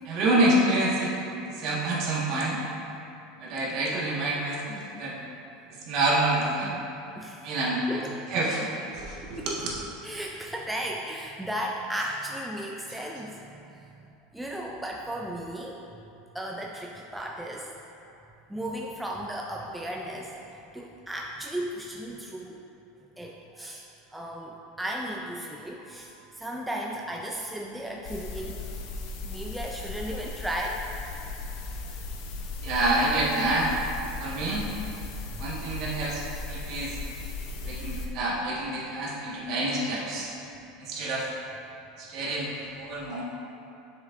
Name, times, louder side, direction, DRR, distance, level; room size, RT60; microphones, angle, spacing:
voice 1, 0.0-1.2 1.5-2.6 3.4-5.2 5.7-6.7 7.4-8.0 8.3-8.7 8.9-9.7 32.6-33.7 34.2-34.6 35.4-37.0 37.6-40.3 40.8-41.3 42.0-43.2, right 1 dB, 50° right, -5 dB, 1.5 m, -27 dB
voice 2, 7.2-7.5 7.9-8.1 9.4-9.5 10.0-14.0 14.3-15.8 16.3-17.7 18.5-22.6 23.2-23.9 24.1-28.7 29.2-30.9 31.8-31.9 35.1-35.4 37.3-37.9 38.6-39.1, right 1 dB, 5° right, -1 dB, 0.4 m, -36 dB
sound 1, 28.1-38.1, left 3 dB, 60° left, 0.7 m, -37 dB
7.2 x 6.3 x 2.5 m, 2.8 s
supercardioid pair, 140°, 0 cm